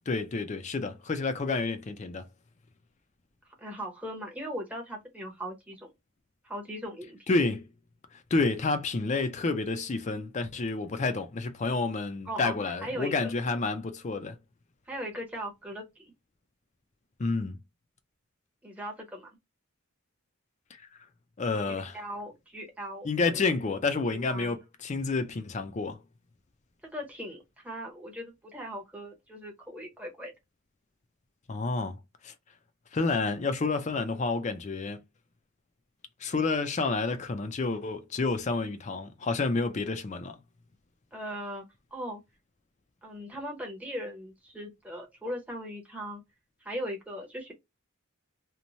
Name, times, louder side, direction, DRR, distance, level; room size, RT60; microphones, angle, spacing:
voice 1, 0.1-2.2 7.3-7.7 8.1-14.4 17.2-17.6 21.4-21.9 23.0-26.0 31.5-32.0 32.2-32.3 32.9-35.0 36.2-40.4, left 3 dB, 35° left, 0.4 m, -29 dB
voice 2, 3.6-5.9 6.4-7.2 12.3-13.3 14.9-16.1 18.6-19.4 21.6-23.4 24.1-24.6 26.8-30.3 41.1-41.6 41.9-42.2 43.0-46.2 46.6-47.5, equal, 5° right, 0.8 m, -39 dB
3.0 x 2.1 x 2.5 m
head